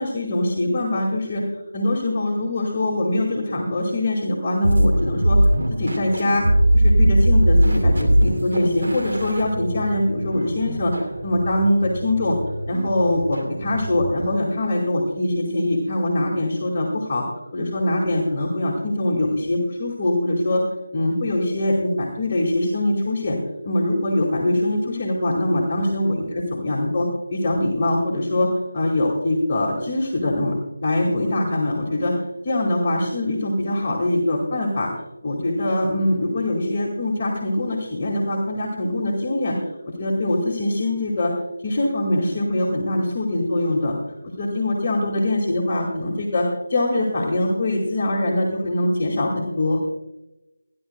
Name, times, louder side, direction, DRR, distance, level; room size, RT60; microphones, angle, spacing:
voice 1, 0.0-1.4 1.7-5.4 5.7-6.5 6.7-12.4 12.7-17.2 17.5-20.6 20.9-23.4 23.6-28.5 28.7-30.5 30.8-32.1 32.4-34.9 35.2-39.6 40.0-41.3 41.6-44.0 44.4-49.8, left 1 dB, 30° left, -3 dB, 1.9 m, -23 dB
sound 1, 4.6-14.3, right 1 dB, 60° right, 2.6 m, -21 dB
29.5 x 10.5 x 2.2 m, 0.99 s
figure-of-eight pair, 160°, 0 cm